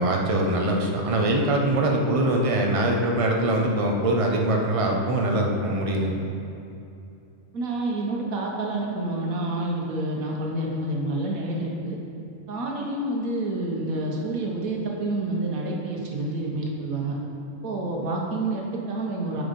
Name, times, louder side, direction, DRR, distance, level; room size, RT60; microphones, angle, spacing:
voice 1, 0.0-6.1, right 1 dB, 35° right, 1 dB, 0.6 m, -23 dB
voice 2, 7.5-12.0 12.5-17.2 17.6-19.4, right 2 dB, 80° right, -1 dB, 1.5 m, -28 dB
7.9 x 5.0 x 5.2 m, 2.7 s
omnidirectional pair, 1.5 m